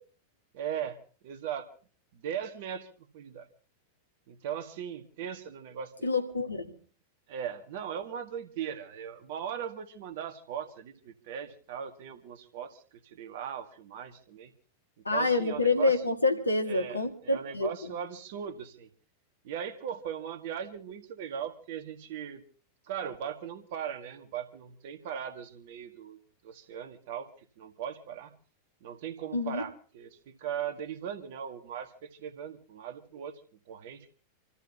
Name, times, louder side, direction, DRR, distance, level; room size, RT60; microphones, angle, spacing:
voice 1, 0.5-1.0 1.2-1.7 2.1-2.9 3.1-3.5 4.3-6.1 7.3-14.5 15.1-16.0 16.7-18.9 19.4-22.4 22.9-26.2 26.4-27.3 27.6-28.3 28.8-33.4 33.7-34.1, right 8 dB, 50° right, 8 dB, 2.0 m, -38 dB
voice 2, 6.0-6.6 15.1-17.9 29.3-29.6, left 3 dB, 80° left, 6 dB, 2.0 m, -27 dB
28.5 x 13.5 x 2.9 m, 0.40 s
figure-of-eight pair, 90°, 0 cm